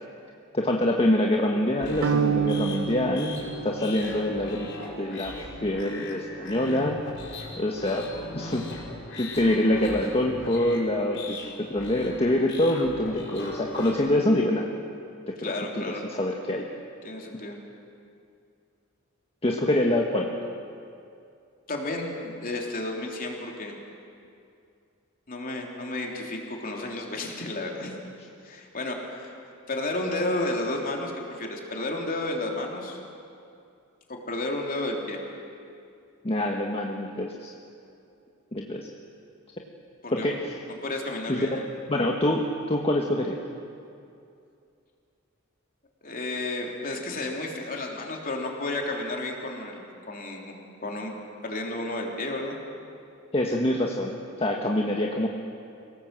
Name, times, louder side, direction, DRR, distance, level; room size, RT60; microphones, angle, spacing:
voice 1, 0.5-5.3 5.6-7.0 7.6-8.7 9.2-14.7 15.3-16.7 19.4-20.3 36.2-37.5 38.5-38.9 40.1-40.5 41.3-41.6 41.9-43.4 53.3-55.3, left 1 dB, 30° left, 0 dB, 1.4 m, -25 dB
sound 1, 1.8-13.9, left 2 dB, 60° left, 5.2 m, -39 dB
sound 2, 2.0-4.3, right 7 dB, 65° right, 0.5 m, -28 dB
voice 2, 15.4-16.0 17.0-17.5 21.7-23.7 25.3-28.0 28.4-29.3 29.7-33.0 34.1-35.2 40.0-40.4 40.7-41.6 46.0-50.5 50.8-51.1 51.4-52.6, left 2 dB, 45° left, 0 dB, 3.3 m, -32 dB
26.5 x 18.0 x 7.6 m, 2.5 s
head